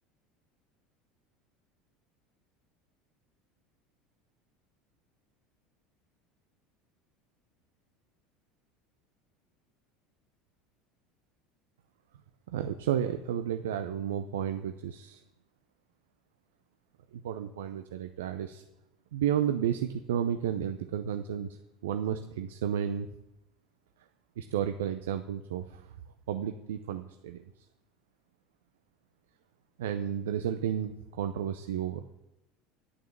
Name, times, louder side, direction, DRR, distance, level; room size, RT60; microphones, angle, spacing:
voice 1, 12.5-15.2 17.1-18.6 19.1-23.1 24.4-25.9 26.3-27.4 29.8-32.2, right 9 dB, 75° right, 8 dB, 0.6 m, -32 dB
10.5 x 6.4 x 7.3 m, 0.91 s
hypercardioid pair, 75°, 0 cm